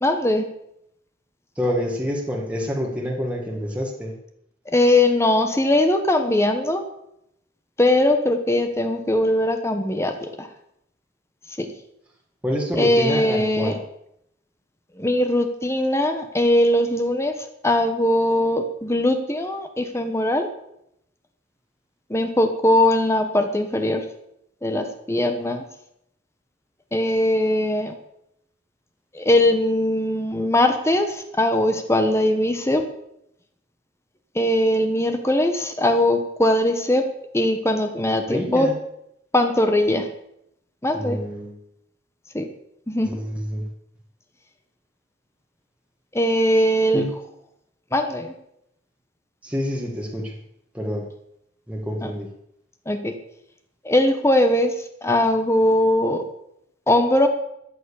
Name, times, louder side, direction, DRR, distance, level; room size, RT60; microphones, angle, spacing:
voice 1, 0.0-0.5 4.7-6.8 7.8-10.5 11.6-11.7 12.8-13.8 15.0-17.3 17.6-20.5 22.1-24.0 24.6-25.6 26.9-27.9 29.1-32.8 34.3-37.1 37.3-38.7 39.3-40.1 40.8-41.2 42.3-42.5 42.9-43.2 46.1-47.0 47.9-48.3 52.0-52.1 52.9-53.1 53.8-54.7 55.0-56.2 56.9-57.3, left 1 dB, 15° left, 6 dB, 1.2 m, -20 dB
voice 2, 1.5-4.1 12.4-13.8 38.3-38.7 40.9-41.6 43.0-43.7 46.9-47.1 49.4-50.4 50.7-51.1 51.7-52.3, equal, 5° right, -2 dB, 1.8 m, -27 dB
13.5 x 9.3 x 7.1 m, 0.78 s
head